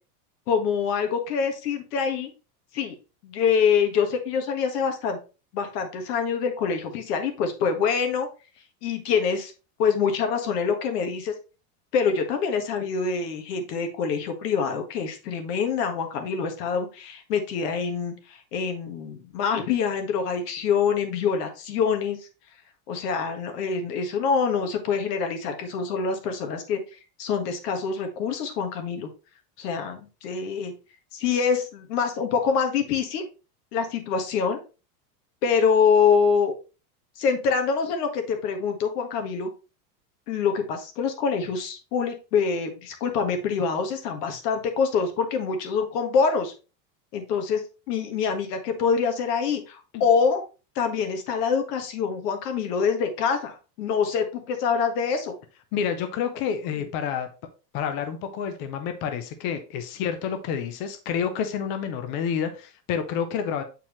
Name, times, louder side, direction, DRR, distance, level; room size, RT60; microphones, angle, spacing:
voice 1, 0.5-2.3 2.7-2.9 3.2-5.2 5.5-8.3 8.8-9.5 9.8-11.3 11.9-22.2 22.9-26.8 27.2-29.1 29.6-30.7 31.1-33.2 33.7-34.6 35.4-36.5 37.2-39.5 40.3-46.5 47.1-50.4 50.7-55.3, left 6 dB, 75° left, 1.7 m, -25 dB
voice 2, 55.7-57.3 57.7-63.6, left 7 dB, 25° left, 0.4 m, -29 dB
7.2 x 4.5 x 3.1 m
supercardioid pair, 165°, 48 cm